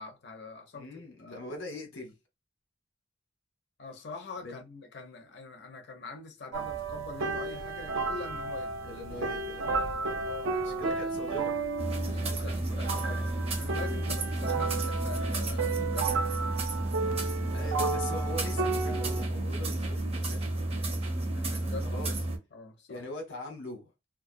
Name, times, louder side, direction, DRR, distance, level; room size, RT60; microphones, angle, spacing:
voice 1, 0.0-0.9 1.2-1.4 3.8-8.9 10.2-11.0 12.0-13.3 13.6-16.3 21.3-22.1 22.5-23.0, left 3 dB, 55° left, 0.6 m, -44 dB
voice 2, 0.7-2.1 4.4-4.6 8.8-9.7 10.6-11.5 12.0-13.0 17.5-20.4 21.8-22.1 22.9-23.9, left 1 dB, 75° left, 1.1 m, -42 dB
sound 1, 6.5-19.2, right 4 dB, 90° right, 0.5 m, -33 dB
sound 2, 11.8-22.4, right 2 dB, 30° right, 0.5 m, -32 dB
2.3 x 2.1 x 2.5 m
head